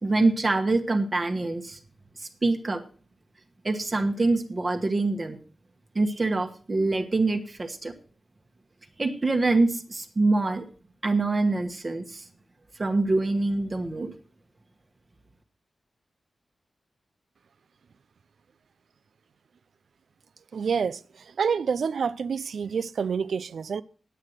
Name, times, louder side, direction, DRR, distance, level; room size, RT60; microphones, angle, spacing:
voice 1, 0.0-1.8 2.2-2.8 3.6-5.4 5.9-7.9 9.0-10.6 11.0-12.2 12.8-14.1, right 2 dB, 30° right, 1.2 m, -25 dB
voice 2, 20.5-21.0 21.4-23.8, right 6 dB, 75° right, 0.5 m, -27 dB
9.5 x 9.1 x 6.4 m
wide cardioid pair, 110°, 0 cm